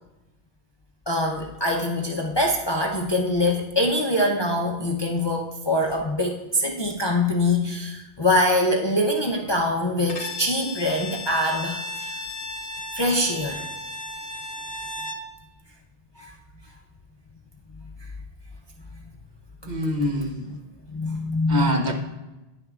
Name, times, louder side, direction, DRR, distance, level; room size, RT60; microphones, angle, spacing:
voice 1, 1.1-12.2 12.9-13.7 16.2-16.3 19.6-19.9 20.9-21.9, left 1 dB, 35° left, 0 dB, 0.5 m, -24 dB
Bowed string instrument, 10.1-15.3, left 2 dB, 65° left, 0.9 m, -35 dB
voice 2, 19.7-20.5 21.5-21.9, left 1 dB, 50° right, 3 dB, 0.8 m, -25 dB
10.0 x 7.1 x 2.4 m, 1.0 s
omnidirectional pair, 1.1 m